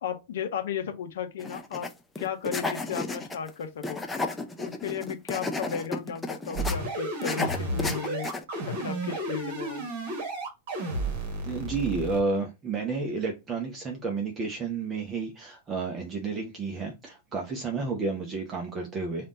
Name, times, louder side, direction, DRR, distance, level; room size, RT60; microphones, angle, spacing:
voice 1, 0.0-1.9 2.2-4.0 4.6-8.3 8.7-9.9, left 8 dB, 60° left, 0.7 m, -34 dB
sound 1, 1.4-1.9 2.2-3.5 3.8-6.8 7.2-8.4, left 3 dB, 10° left, 0.6 m, -32 dB
sound 2, 6.5-12.2, right 2 dB, 50° right, 1.4 m, -32 dB
voice 2, 11.4-19.3, right 4 dB, 25° right, 0.8 m, -31 dB
3.5 x 2.5 x 3.6 m
figure-of-eight pair, 90°, 0 cm